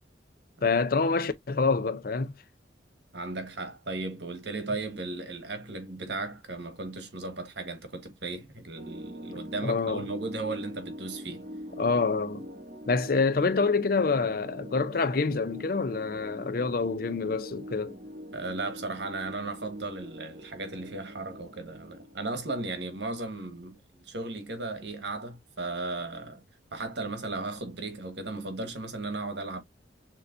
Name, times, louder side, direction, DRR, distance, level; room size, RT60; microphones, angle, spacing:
voice 1, 0.6-2.3 9.6-10.0 11.8-12.5 12.9-17.9, left 4 dB, 50° left, 0.5 m, -26 dB
voice 2, 3.1-11.4 18.3-26.4 26.7-29.6, right 2 dB, 65° right, 1.4 m, -36 dB
sound 1, 8.8-23.1, equal, 50° right, 1.0 m, -43 dB
6.6 x 2.9 x 2.5 m
head